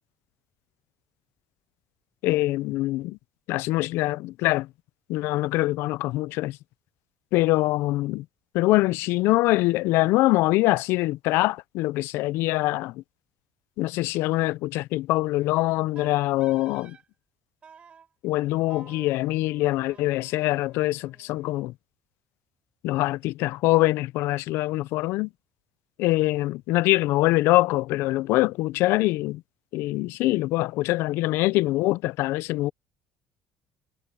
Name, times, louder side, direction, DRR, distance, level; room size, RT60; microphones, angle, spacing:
voice 1, 2.2-3.2 3.5-4.7 5.1-6.6 7.3-8.3 8.5-13.0 13.8-17.0 18.2-21.7 22.8-25.3 26.0-29.4 29.7-32.7, left 19 dB, 75° left, 0.4 m, -24 dB
Wind instrument woodwind instrument, 15.9-17.0 17.6-18.1 18.7-21.7, right 6 dB, 30° right, 5.0 m, -53 dB
cardioid pair, 165°, 4 cm